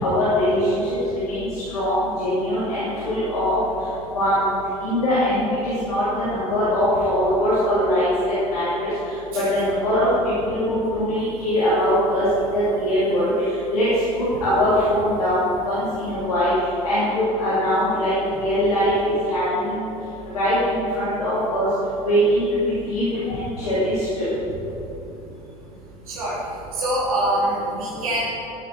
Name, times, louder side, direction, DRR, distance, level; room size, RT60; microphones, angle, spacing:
voice 1, 0.0-0.7 1.1-3.6 4.1-4.4 4.8-8.0 8.5-8.9 9.5-10.1 10.5-12.2 12.5-13.3 13.7-13.9 14.2-16.5 16.8-19.8 20.3-21.7 22.0-22.6 22.9-24.3, equal, 75° left, -11 dB, 3.3 m, -22 dB
voice 2, 26.1-26.4 26.7-28.3, right 1 dB, 65° right, -6 dB, 3.3 m, -24 dB
15.0 x 9.3 x 4.7 m, 3.0 s
figure-of-eight pair, 65°, 19 cm